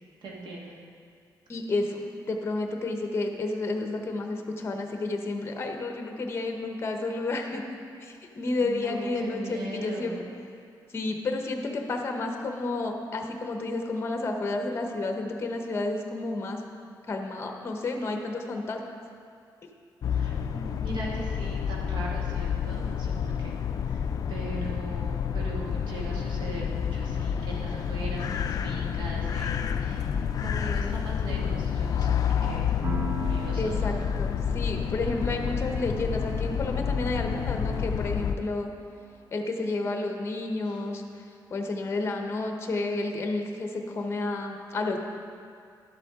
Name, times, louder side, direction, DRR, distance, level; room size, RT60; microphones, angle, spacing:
voice 1, 0.2-0.8 8.5-10.3 20.1-23.6 23.9-30.1 30.4-32.7 33.2-34.0 40.6-40.8, right 2 dB, 75° right, -3 dB, 1.6 m, -39 dB
voice 2, 1.5-7.6 8.0-10.1 10.9-16.6 17.1-18.8 33.6-38.7 39.3-41.0 41.5-45.0, left 2 dB, 35° left, 3 dB, 0.9 m, -31 dB
sound 1, 20.0-38.4, left 7 dB, 50° left, 0.3 m, -29 dB
Piano, 32.8-40.2, right 2 dB, 40° right, 0.5 m, -42 dB
11.5 x 7.5 x 3.7 m, 2.3 s
wide cardioid pair, 160°, 8 cm